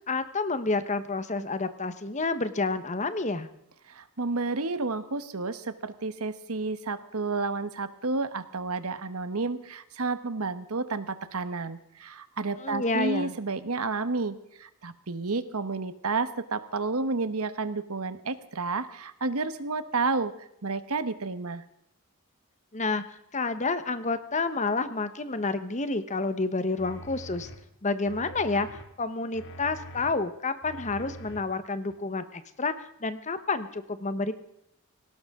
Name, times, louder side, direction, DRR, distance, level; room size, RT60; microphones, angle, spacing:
voice 1, 0.1-3.5 12.6-13.3 22.7-23.0 23.3-27.5 27.8-28.7 29.0-34.3, left 3 dB, 30° left, 11 dB, 1.1 m, -29 dB
voice 2, 3.9-21.6, right 3 dB, 75° right, 13 dB, 1.1 m, -31 dB
sound 1, 26.8-27.6 28.1-28.8 29.3-30.1 30.6-31.4 31.9-32.0, right 1 dB, 55° left, 2.5 m, -44 dB
18.5 x 17.0 x 3.7 m, 0.79 s
head